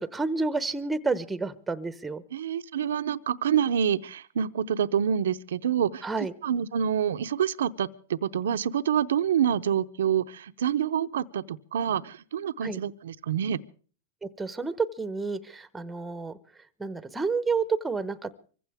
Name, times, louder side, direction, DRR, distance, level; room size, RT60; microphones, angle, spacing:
voice 1, 0.0-2.2 6.0-6.3 12.6-12.8 14.2-16.3 16.8-18.3, right 4 dB, 10° right, 14 dB, 0.9 m, -30 dB
voice 2, 2.3-13.6, right 8 dB, 80° right, 12 dB, 0.7 m, -27 dB
24.5 x 15.5 x 3.5 m, 0.41 s
hypercardioid pair, 125°, 0 cm